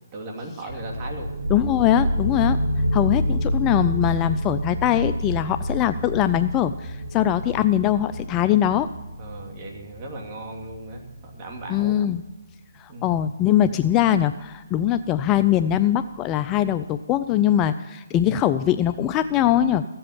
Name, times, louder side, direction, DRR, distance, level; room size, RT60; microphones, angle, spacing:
voice 1, 0.1-1.4 9.2-11.1 11.3-12.0 12.9-13.1, right 1 dB, 30° right, 1 dB, 2.5 m, -37 dB
sound 1, 0.7-12.1, equal, 50° right, 1.8 m, -28 dB
voice 2, 1.5-2.6 2.9-8.9 11.7-12.2 12.8-19.9, left 11 dB, 20° left, 11 dB, 0.3 m, -21 dB
15.0 x 7.8 x 7.1 m, 1.1 s
hypercardioid pair, 150°, 0 cm